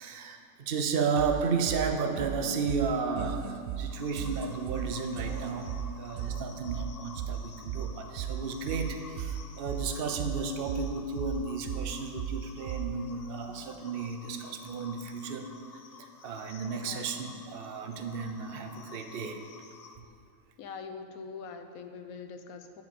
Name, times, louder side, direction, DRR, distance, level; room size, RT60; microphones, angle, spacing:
voice 1, 0.0-15.5 15.7-19.4, right 5 dB, 50° right, 6 dB, 0.9 m, -33 dB
sound 1, 1.2-13.2, right 8 dB, 80° right, 1.0 m, -37 dB
sound 2, 3.9-20.0, left 5 dB, 60° left, 0.4 m, -51 dB
voice 2, 20.6-22.8, left 5 dB, 85° left, 7 dB, 1.2 m, -43 dB
10.5 x 5.0 x 7.6 m, 2.3 s
omnidirectional pair, 1.5 m